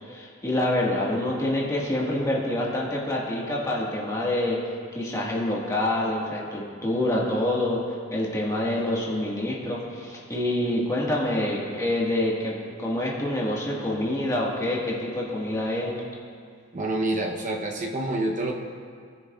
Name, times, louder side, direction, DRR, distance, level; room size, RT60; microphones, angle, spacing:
voice 1, 0.0-4.6 4.9-7.8 8.1-15.9, left 1 dB, 15° left, -4 dB, 1.5 m, -26 dB
voice 2, 16.7-18.5, right 2 dB, 35° right, 1 dB, 0.8 m, -27 dB
19.0 x 6.8 x 2.4 m, 2.2 s
head